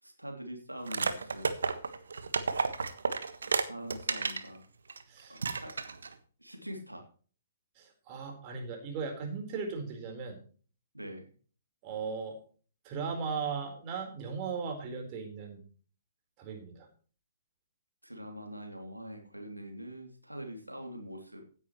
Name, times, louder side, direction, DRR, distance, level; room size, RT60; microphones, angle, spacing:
voice 1, 0.0-1.5 3.4-4.6 5.3-5.7 6.4-7.0 10.9-11.3 18.0-21.4, equal, 85° right, 3 dB, 2.9 m, -44 dB
sound 1, 0.9-4.5 4.9-5.0 5.4-6.1, right 4 dB, 65° right, 1.4 m, -32 dB
voice 2, 7.8-10.4 11.8-12.4 12.8-15.6 16.4-16.9, right 5 dB, 30° right, 3 dB, 4.2 m, -37 dB
16.5 x 10.0 x 3.1 m, 0.40 s
figure-of-eight pair, 120°, 0 cm